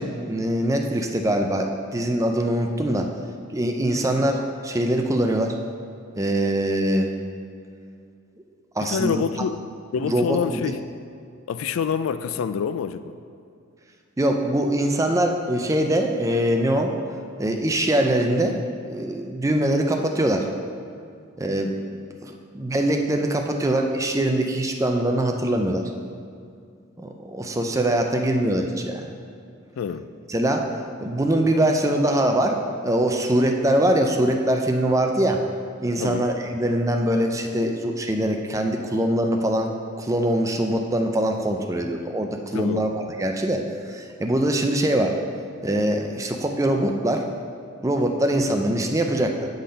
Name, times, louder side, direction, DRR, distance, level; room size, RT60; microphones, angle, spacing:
voice 1, 0.0-3.1 3.5-5.5 6.1-7.1 8.8-9.2 10.0-10.7 14.2-16.9 17.4-20.5 21.4-25.8 27.0-29.1 30.3-30.7 31.0-32.6 32.8-35.4 35.8-39.7 40.0-42.9 43.2-45.2 45.6-47.2 47.8-49.5, right 1 dB, 15° right, 3 dB, 0.5 m, -23 dB
voice 2, 8.8-9.6 9.9-10.8 11.5-13.1 29.8-30.1 36.0-36.3 42.5-42.9, left 6 dB, 85° left, 13 dB, 0.3 m, -26 dB
8.3 x 3.9 x 5.2 m, 2.3 s
head